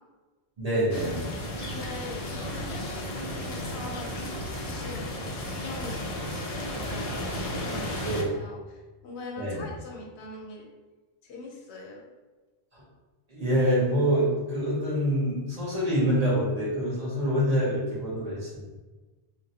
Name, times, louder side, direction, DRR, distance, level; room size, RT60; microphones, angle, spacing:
voice 1, 0.6-1.2 8.0-8.2 9.4-9.6 12.7-12.8 13.3-18.6, equal, 40° right, -7 dB, 0.9 m, -26 dB
sound 1, 0.9-8.2, left 1 dB, 60° left, 0.4 m, -34 dB
voice 2, 1.6-6.0 6.6-10.7 11.2-12.0, left 2 dB, 85° left, 0 dB, 0.9 m, -42 dB
2.8 x 2.2 x 2.7 m, 1.2 s
omnidirectional pair, 1.1 m